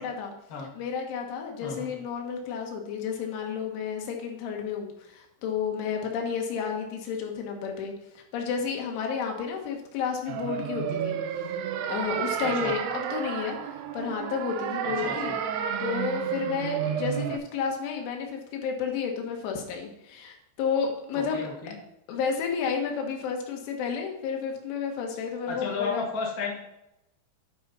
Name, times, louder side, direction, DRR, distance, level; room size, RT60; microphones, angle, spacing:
voice 1, 0.0-0.3 0.7-11.2 11.9-13.6 13.9-15.4 15.8-21.4 22.1-26.1, left 6 dB, 85° left, 2 dB, 3.9 m, -31 dB
sound 1, 10.3-17.4, right 8 dB, 80° right, 3.1 m, -31 dB
voice 2, 12.4-12.7 14.8-15.3 21.1-21.7 25.5-26.5, left 4 dB, 45° left, -2 dB, 1.1 m, -33 dB
11.0 x 5.5 x 4.1 m, 0.87 s
omnidirectional pair, 5.3 m